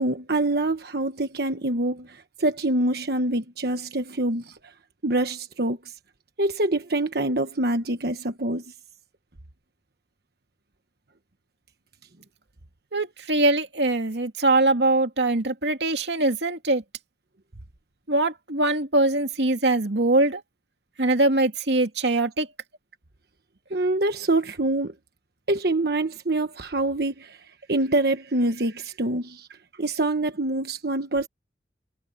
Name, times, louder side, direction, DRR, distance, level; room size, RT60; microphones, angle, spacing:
voice 1, 0.0-4.6 5.0-5.8 6.4-8.6 23.7-24.9 25.5-27.4 27.7-29.5 29.8-31.3, right 2 dB, 60° right, 1.3 m, -25 dB
voice 2, 12.9-16.8 18.1-20.4 21.0-22.5, right 2 dB, 75° right, 2.4 m, -22 dB
head